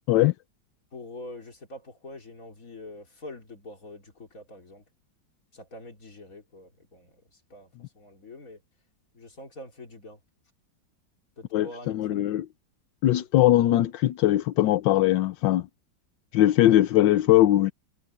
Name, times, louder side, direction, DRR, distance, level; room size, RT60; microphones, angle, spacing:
voice 1, 0.9-4.8 5.5-8.6 9.1-10.2 11.4-12.4, left 2 dB, 45° left, 3.8 m, -45 dB
voice 2, 11.5-12.4 13.0-15.7 16.3-17.7, left 14 dB, 80° left, 1.4 m, -21 dB
omnidirectional pair, 2.1 m